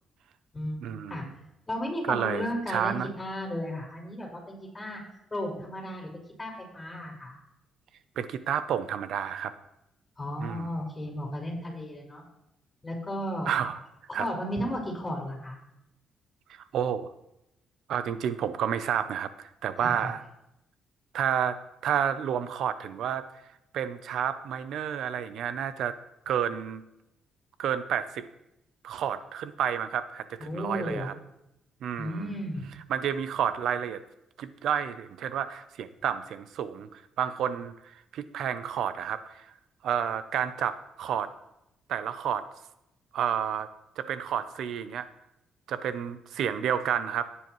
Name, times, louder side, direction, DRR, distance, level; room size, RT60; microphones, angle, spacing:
voice 1, 0.8-1.2 2.1-3.1 8.2-9.5 10.4-10.7 13.5-13.8 14.1-14.3 16.5-17.1 17.9-20.2 21.1-21.6 21.8-23.2 23.7-25.9 26.3-26.8 27.6-28.2 28.8-31.1 31.8-32.3 32.9-34.0 34.4-39.5 39.8-41.3 41.9-42.5 43.1-43.7 44.0-45.1 45.7-47.3, right 9 dB, 75° right, 12 dB, 0.6 m, -30 dB
voice 2, 1.7-5.0 5.3-7.4 10.2-12.2 12.8-13.5 14.1-15.6 19.8-20.1 30.4-31.1 32.0-32.7, equal, 20° left, -2 dB, 4.9 m, -34 dB
15.0 x 9.8 x 3.1 m, 0.87 s
cardioid pair, 90°, 0 cm